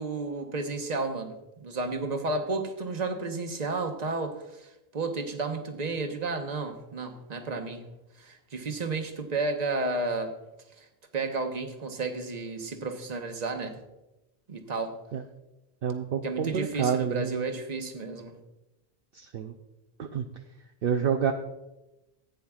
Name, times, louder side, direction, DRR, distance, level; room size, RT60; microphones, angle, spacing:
voice 1, 0.0-7.8 8.2-10.3 11.1-13.8 14.5-14.9 16.2-18.4, right 3 dB, 40° right, 5 dB, 1.1 m, -32 dB
voice 2, 15.8-17.4 19.1-19.5 20.0-20.3 20.8-21.3, right 7 dB, 60° right, 3 dB, 0.8 m, -28 dB
15.0 x 9.2 x 2.4 m, 0.96 s
omnidirectional pair, 1.1 m